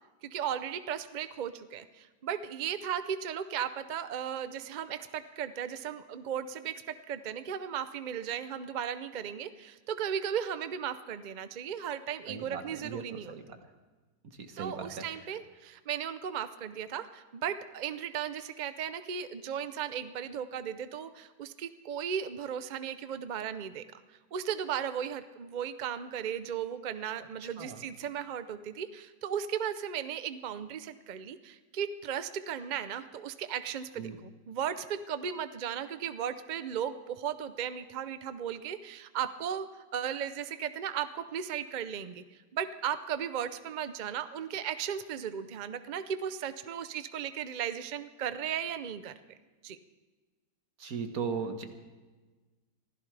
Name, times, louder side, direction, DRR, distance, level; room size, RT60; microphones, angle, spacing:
voice 1, 0.2-13.4 14.6-24.0 24.3-42.2 42.5-49.1 49.6-49.8, right 8 dB, 75° right, 11 dB, 0.4 m, -36 dB
voice 2, 12.3-13.6 14.4-15.0 27.4-27.8 34.0-34.2 50.8-51.6, right 5 dB, 60° right, 6 dB, 1.7 m, -38 dB
24.5 x 15.5 x 3.4 m, 1.3 s
omnidirectional pair, 1.8 m